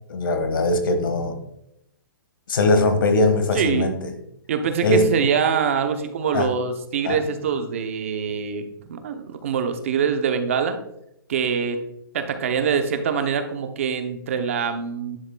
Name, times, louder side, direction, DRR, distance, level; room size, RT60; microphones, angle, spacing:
voice 1, 0.1-1.4 2.5-4.1 4.8-5.3 6.3-6.5 7.0-7.2, left 2 dB, 70° left, 7 dB, 1.4 m, -21 dB
voice 2, 3.5-3.9 4.5-10.8 11.3-11.8 12.1-15.2, right 6 dB, 35° right, 7 dB, 0.6 m, -24 dB
10.5 x 7.1 x 2.2 m, 0.80 s
hypercardioid pair, 180°, 12 cm